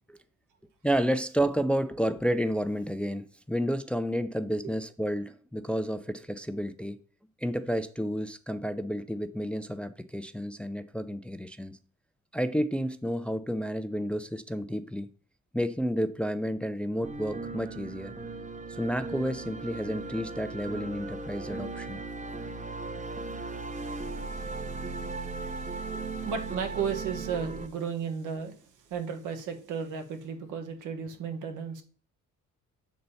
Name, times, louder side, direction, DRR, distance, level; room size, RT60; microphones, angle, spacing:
voice 1, 0.8-7.0 7.4-11.8 12.3-15.1 15.5-18.1 18.7-22.0 25.9-26.0, equal, 5° left, 0.4 m, -31 dB
sound 1, 17.0-27.7, right 3 dB, 25° right, 0.8 m, -37 dB
voice 2, 23.7-31.8, right 6 dB, 85° right, 1.5 m, -36 dB
6.7 x 4.0 x 5.6 m
cardioid pair, 90°, 30 cm